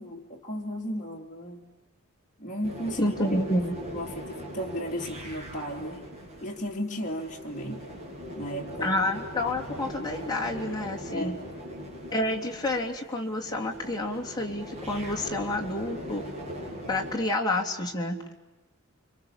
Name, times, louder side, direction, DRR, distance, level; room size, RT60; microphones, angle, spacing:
voice 1, 0.0-1.7 2.4-3.1 3.9-6.0 6.4-7.8 8.4-8.9 11.1-11.4, equal, 35° left, 0 dB, 3.1 m, -35 dB
sound 1, 2.6-17.2, equal, 30° right, 7.7 m, -40 dB
voice 2, 3.0-3.8 8.8-11.4 12.1-16.2 16.9-18.2, left 1 dB, 20° left, -1 dB, 3.2 m, -29 dB
29.5 x 25.0 x 7.4 m, 1.1 s
head